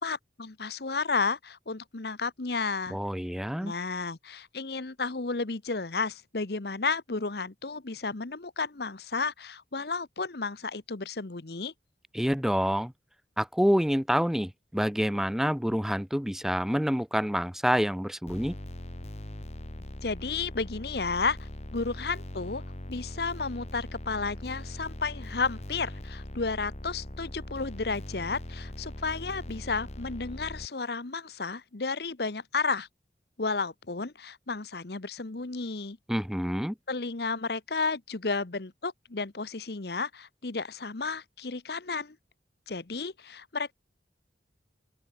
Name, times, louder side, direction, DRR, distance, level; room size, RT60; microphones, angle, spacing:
voice 1, 0.0-3.0 3.6-11.7 20.0-22.6 22.9-32.9 33.4-36.0 36.9-42.2 42.7-43.7, left 4 dB, 65° left, 1.1 m, -32 dB
voice 2, 2.9-3.7 12.1-12.9 13.4-18.5 36.1-36.7, equal, ahead, 0.6 m, -27 dB
sound 1, 18.3-30.7, left 1 dB, 35° left, 1.6 m, -41 dB
open air
head